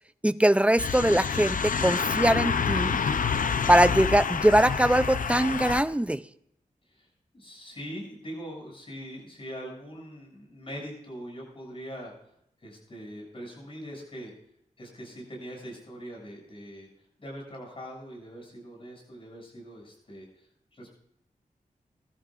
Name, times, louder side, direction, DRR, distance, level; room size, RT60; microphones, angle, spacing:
voice 1, 0.2-3.0 3.7-6.2, right 1 dB, 10° right, 0.5 m, -22 dB
sound 1, 0.8-5.8, left 6 dB, 70° left, 0.7 m, -28 dB
voice 2, 3.2-3.6 6.9-7.1 7.3-12.1 12.6-14.3 14.8-20.9, equal, 40° left, 7.1 m, -42 dB
23.5 x 12.5 x 2.5 m
wide cardioid pair, 125°, 14 cm